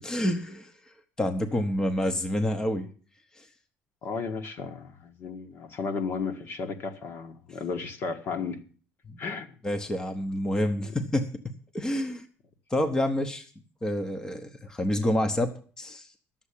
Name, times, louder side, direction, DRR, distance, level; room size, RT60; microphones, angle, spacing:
voice 1, 0.0-0.7 1.2-2.9 3.4-3.5 9.1-9.2 9.6-11.3 11.7-12.3 12.7-13.5 13.8-16.1, left 1 dB, 15° left, 0.9 m, -28 dB
voice 2, 4.0-8.6 9.2-9.5 10.8-10.9, left 5 dB, 45° left, 1.5 m, -34 dB
11.0 x 7.4 x 8.4 m
cardioid pair, 140°, 5 cm